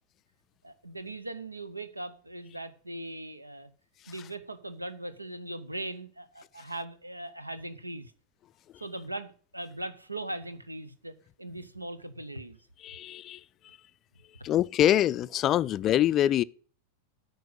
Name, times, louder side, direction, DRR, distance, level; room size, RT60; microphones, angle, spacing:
voice 1, 0.6-3.7 4.1-8.1 8.8-12.6, right 1 dB, 85° right, 0.7 m, -39 dB
voice 2, 12.8-13.4 14.4-16.4, left 12 dB, 30° left, 0.3 m, -24 dB
9.3 x 5.3 x 7.7 m
figure-of-eight pair, 90°, 0 cm